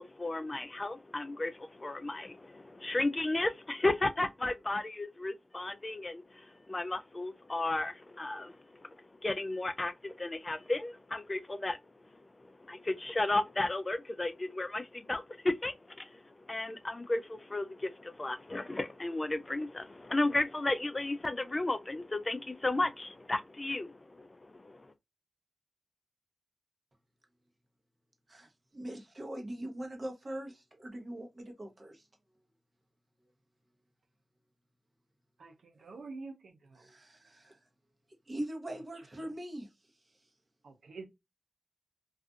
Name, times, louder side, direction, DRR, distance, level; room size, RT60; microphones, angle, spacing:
voice 1, 0.0-11.8 12.1-24.9, left 2 dB, 30° left, 0.3 m, -34 dB
voice 2, 28.3-32.1 35.7-35.9 36.7-37.6 38.3-39.7, right 1 dB, 40° right, 0.9 m, -42 dB
voice 3, 35.4-36.9 40.6-41.0, right 3 dB, 90° right, 0.6 m, -47 dB
2.5 x 2.4 x 2.4 m
cardioid pair, 65°, 0 cm